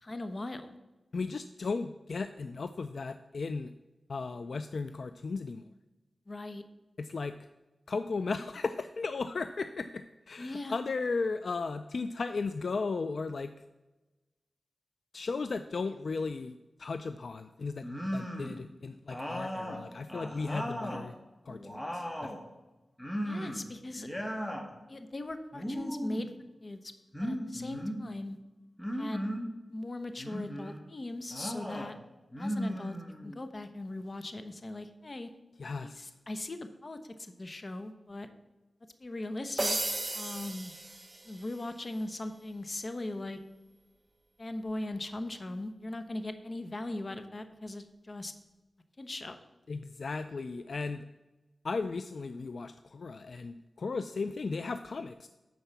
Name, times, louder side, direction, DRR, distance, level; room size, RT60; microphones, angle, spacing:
voice 1, 0.0-0.7 6.3-6.6 10.4-10.8 23.2-24.1 24.9-26.3 26.6-26.9 27.2-28.4 28.9-29.2 29.7-31.9 32.4-33.0 33.2-35.3 35.8-38.3 39.0-39.8 40.1-40.7 41.2-43.4 44.4-48.3 49.0-49.4, left 2 dB, 40° left, 9 dB, 0.9 m, -39 dB
voice 2, 1.1-3.7 4.1-5.7 7.0-7.3 7.9-13.5 15.1-17.9 18.1-21.1 21.5-22.3 35.6-36.1 49.7-51.0 51.6-55.3, left 4 dB, 65° left, 10 dB, 0.3 m, -36 dB
sound 1, 17.8-18.6 19.1-21.1 21.5-22.4 23.0-23.7 23.9-24.7 25.5-26.3 27.1-28.0 28.8-29.5 30.2-30.8 31.3-31.9 32.3-33.4, equal, 10° left, 1.5 m, -36 dB
sound 2, 39.6-41.6, right 2 dB, 25° right, 0.8 m, -35 dB
10.5 x 4.7 x 6.9 m, 1.1 s
wide cardioid pair, 80°, 0 cm